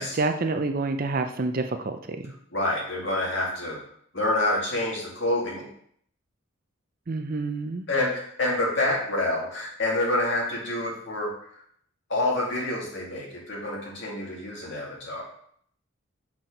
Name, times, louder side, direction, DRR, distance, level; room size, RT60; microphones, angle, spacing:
voice 1, 0.0-2.2 7.1-7.8, right 3 dB, 45° right, 7 dB, 0.5 m, -28 dB
voice 2, 2.5-3.8 4.1-5.7 7.9-11.3 12.1-15.2, left 1 dB, 55° left, -3 dB, 2.3 m, -27 dB
5.8 x 4.6 x 5.2 m, 0.64 s
head